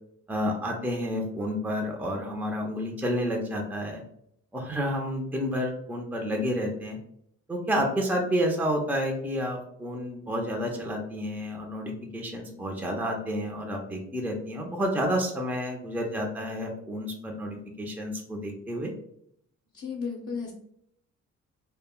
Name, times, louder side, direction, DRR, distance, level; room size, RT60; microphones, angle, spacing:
voice 1, 0.3-4.0 4.5-7.0 7.5-18.9, equal, 5° right, 1 dB, 0.5 m, -30 dB
voice 2, 19.7-20.5, left 5 dB, 45° left, -3 dB, 0.7 m, -33 dB
2.1 x 2.1 x 3.6 m, 0.70 s
cardioid pair, 90°, 30 cm